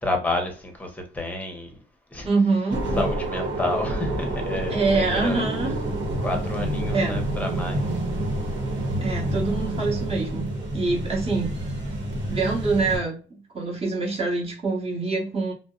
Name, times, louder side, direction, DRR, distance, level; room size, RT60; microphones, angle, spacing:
voice 1, 0.0-1.7 2.1-2.3 3.0-5.4 6.2-7.9, left 2 dB, 10° left, 0.8 m, -29 dB
voice 2, 2.2-2.8 4.7-5.7 6.9-7.2 9.0-11.6 12.3-13.2 13.5-15.5, right 3 dB, 30° right, 1.2 m, -25 dB
sound 1, 2.7-13.0, right 1 dB, 70° right, 1.0 m, -28 dB
2.5 x 2.0 x 2.4 m
cardioid pair, 90°, 20 cm